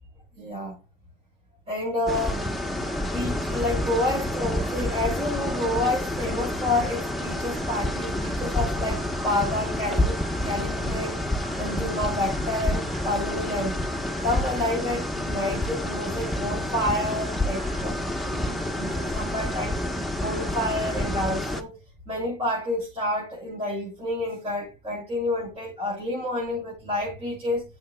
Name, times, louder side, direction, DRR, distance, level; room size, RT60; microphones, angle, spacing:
voice 1, 0.4-0.8 1.7-2.5 3.0-10.2 10.4-11.2 11.6-13.8 14.2-18.0 18.2-21.7 22.1-27.6, left 1 dB, 40° right, 7.0 m, -29 dB
sound 1, 2.1-21.6, left 1 dB, ahead, 1.3 m, -28 dB
14.5 x 7.5 x 2.4 m
cardioid pair, 110°, 17 cm